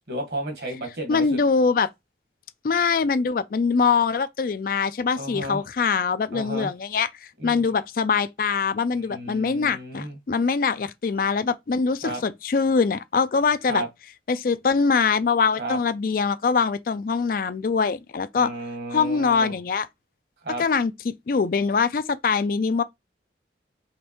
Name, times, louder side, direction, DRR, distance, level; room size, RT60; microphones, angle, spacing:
voice 1, 0.1-1.4 5.1-5.6 6.3-6.7 7.4-7.7 8.9-10.2 12.0-12.2 13.7-13.9 15.6-15.8 18.4-19.6 20.4-20.6, right 1 dB, 60° right, 1.6 m, -33 dB
voice 2, 1.1-1.9 2.6-13.8 14.3-18.5 18.9-19.9 20.6-22.8, left 5 dB, 50° left, 0.4 m, -23 dB
5.0 x 3.1 x 3.0 m
head